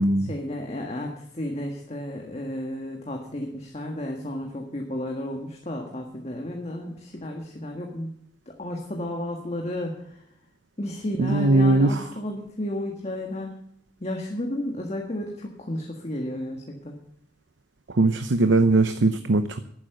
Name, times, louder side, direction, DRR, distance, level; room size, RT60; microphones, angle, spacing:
voice 1, 0.3-8.1 8.5-10.1 10.8-13.5 14.0-16.9, left 1 dB, 35° left, 2 dB, 1.6 m, -32 dB
voice 2, 11.2-12.0 17.9-19.6, right 2 dB, 85° right, 10 dB, 0.8 m, -20 dB
11.5 x 9.8 x 6.7 m, 0.71 s
head